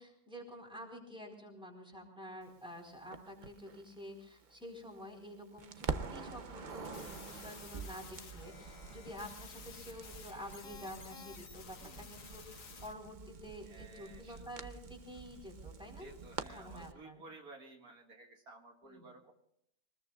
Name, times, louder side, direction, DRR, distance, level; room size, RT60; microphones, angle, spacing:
voice 1, 0.0-16.1 16.4-17.2 18.8-19.1, equal, 5° right, 1 dB, 4.4 m, -49 dB
Crackle, 3.1-5.3 5.6-16.9, right 5 dB, 40° right, 0.8 m, -46 dB
sound 1, 6.7-12.9, left 5 dB, 60° left, 1.6 m, -53 dB
voice 2, 11.7-12.1 13.6-14.8 16.0-19.3, right 2 dB, 75° right, 2 dB, 2.5 m, -55 dB
25.0 x 20.5 x 2.4 m, 0.72 s
omnidirectional pair, 1.6 m